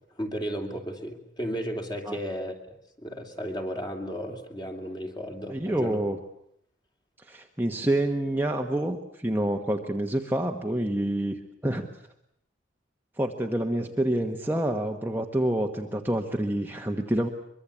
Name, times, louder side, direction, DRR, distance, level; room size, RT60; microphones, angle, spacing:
voice 1, 0.1-2.5 3.0-6.0, equal, 20° left, 3 dB, 2.9 m, -34 dB
voice 2, 5.5-6.2 7.2-11.9 13.2-17.3, right 1 dB, 10° right, 2 dB, 1.3 m, -27 dB
24.0 x 23.0 x 8.5 m, 0.74 s
head